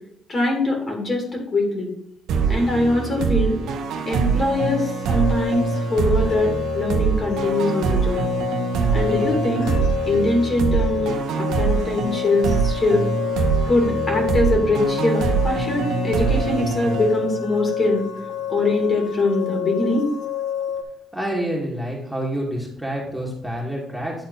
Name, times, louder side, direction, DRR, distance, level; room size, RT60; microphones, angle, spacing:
voice 1, 0.3-1.9 2.5-3.6 4.1-8.2 8.9-9.7 10.0-13.0 13.7-18.0 18.5-20.1, left 2 dB, 40° left, 0 dB, 2.7 m, -22 dB
sound 1, 2.3-17.7, right 5 dB, 80° right, 0.9 m, -24 dB
sound 2, 4.6-20.8, left 9 dB, 80° left, 0.8 m, -29 dB
voice 2, 21.1-24.1, right 1 dB, ahead, -3 dB, 2.2 m, -27 dB
10.0 x 4.1 x 4.0 m, 0.77 s
cardioid pair, 90°, 0 cm